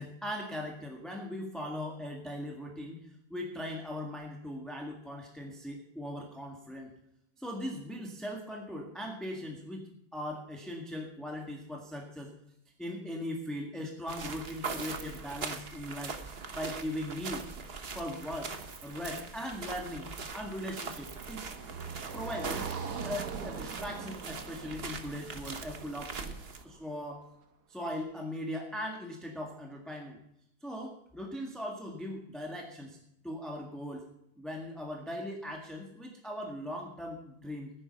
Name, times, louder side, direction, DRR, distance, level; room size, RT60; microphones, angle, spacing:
voice 1, 0.0-3.0 3.3-6.9 7.4-9.8 10.1-12.3 12.8-16.2 16.5-17.7 17.9-18.5 18.8-20.0 20.3-21.4 22.1-22.7 23.0-26.4 26.6-27.2 27.7-30.2 30.6-33.0 33.2-34.1 34.4-37.7, left 1 dB, ahead, 0 dB, 1.5 m, -39 dB
sound 1, 14.1-26.6, right 4 dB, 35° right, 1.1 m, -41 dB
Car passing by, 19.6-26.8, right 6 dB, 55° right, 1.7 m, -43 dB
14.5 x 10.5 x 5.3 m, 0.79 s
omnidirectional pair, 2.2 m